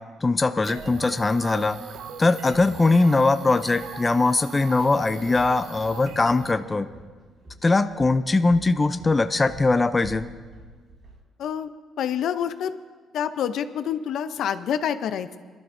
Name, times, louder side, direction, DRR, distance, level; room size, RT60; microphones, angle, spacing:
voice 1, 0.2-1.8 2.2-6.9 7.6-10.3, left 3 dB, 20° left, 10 dB, 0.4 m, -21 dB
sound 1, 0.6-6.5, right 7 dB, 70° right, 0.6 m, -41 dB
Walk footsteps, 5.1-11.2, right 2 dB, 45° right, 4.9 m, -47 dB
voice 2, 11.4-11.7 12.0-12.7 13.1-15.4, left 9 dB, 70° left, 11 dB, 0.5 m, -27 dB
24.5 x 12.0 x 2.6 m, 1.5 s
cardioid pair, 115°, 0 cm